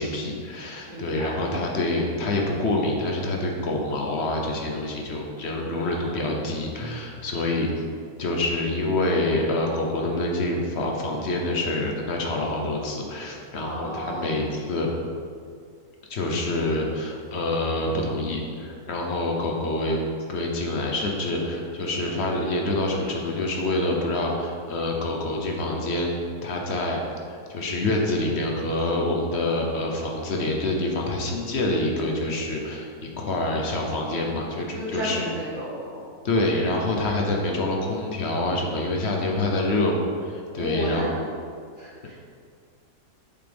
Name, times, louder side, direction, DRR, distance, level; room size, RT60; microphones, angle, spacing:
voice 1, 0.0-7.7 8.2-14.9 16.1-20.0 20.3-26.1 26.4-27.0 27.3-35.3 36.2-41.1, left 2 dB, 50° left, 0 dB, 0.9 m, -26 dB
voice 2, 0.9-1.4 5.8-6.5 13.6-14.4 34.8-36.0 40.6-41.1 41.8-42.1, equal, 50° right, -5 dB, 1.8 m, -33 dB
6.9 x 5.7 x 3.4 m, 2.2 s
omnidirectional pair, 1.6 m